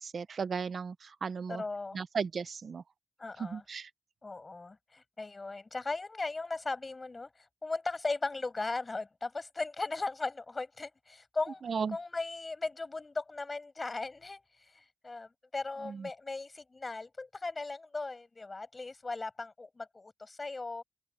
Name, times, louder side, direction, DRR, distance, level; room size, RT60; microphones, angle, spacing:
voice 1, 0.0-1.6 1.9-2.8 3.4-3.9 11.6-12.0 15.8-16.1, right 5 dB, 70° right, 0.7 m, -35 dB
voice 2, 1.5-2.0 3.2-3.6 4.2-11.6 11.9-14.4 14.7-20.8, left 3 dB, 35° left, 6.5 m, -37 dB
open air
wide cardioid pair, 85°, 0 cm